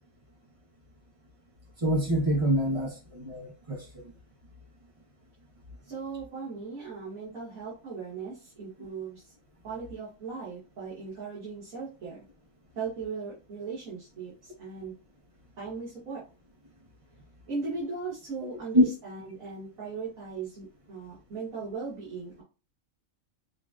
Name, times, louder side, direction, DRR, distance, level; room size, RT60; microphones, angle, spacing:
voice 1, 1.8-3.8 18.7-18.9, equal, 25° right, 1.2 m, -25 dB
voice 2, 5.8-9.3 9.6-12.2 12.8-14.9 15.6-16.2 17.5-22.4, right 4 dB, 85° right, 2.4 m, -38 dB
6.5 x 3.0 x 2.4 m
omnidirectional pair, 1.4 m